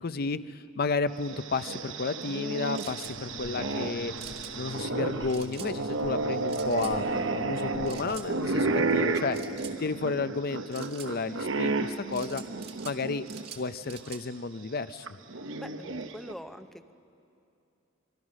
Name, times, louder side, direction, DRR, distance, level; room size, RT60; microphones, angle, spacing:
voice 1, 0.0-4.1 4.5-7.0 7.3-9.4 9.8-12.4 12.8-13.3 13.5-15.1, left 4 dB, 50° left, 13 dB, 0.6 m, -32 dB
sound 1, 1.2-13.5 13.9-14.0 15.1-16.3, right 3 dB, 70° right, 0.9 m, -32 dB
sound 2, 2.7-3.1 4.2-4.5 5.3-5.7 6.5-6.9 7.9-8.3 9.3-9.8 10.7-11.1 12.1-13.0 13.3-14.2, right 8 dB, 55° right, 1.9 m, -45 dB
sound 3, 3.0-9.2, left 3 dB, 70° left, 1.5 m, -44 dB
voice 2, 15.5-16.9, equal, ahead, 9 dB, 0.7 m, -44 dB
25.5 x 23.0 x 6.4 m, 2.7 s
head